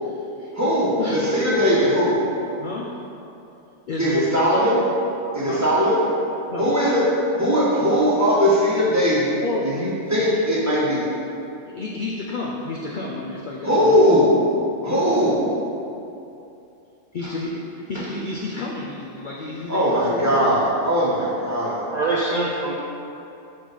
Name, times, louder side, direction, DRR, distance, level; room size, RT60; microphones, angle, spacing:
voice 1, 0.0-0.5 1.0-1.2 2.6-3.0 3.9-4.4 5.4-5.7 6.5-6.8 9.4-9.7 10.1-10.4 11.7-14.0 17.1-20.6, left 2 dB, 60° left, -2 dB, 0.5 m, -30 dB
voice 2, 0.5-2.2 4.0-4.8 5.3-6.0 6.6-7.1 7.4-9.3 9.6-11.1 13.6-14.3 14.8-15.4 19.7-21.8, equal, 15° right, -8 dB, 1.1 m, -19 dB
voice 3, 21.6-22.7, right 2 dB, 75° right, -4 dB, 0.4 m, -24 dB
6.2 x 4.6 x 4.1 m, 2.8 s
omnidirectional pair, 1.4 m